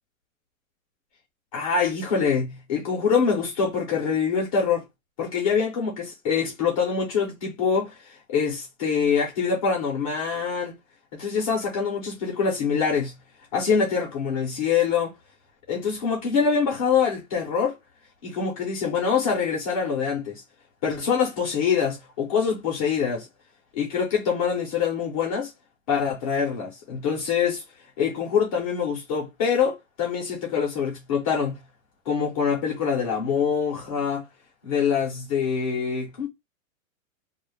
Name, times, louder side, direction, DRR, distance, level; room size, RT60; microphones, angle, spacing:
voice 1, 1.5-4.8 5.2-10.8 11.1-13.2 13.5-15.1 15.7-17.8 18.2-20.4 20.8-23.3 23.7-25.5 25.9-27.6 28.0-31.6 32.1-34.3 34.6-36.3, left 6 dB, 25° left, 0.6 m, -25 dB
2.3 x 2.1 x 3.1 m
supercardioid pair, 170°, 40 cm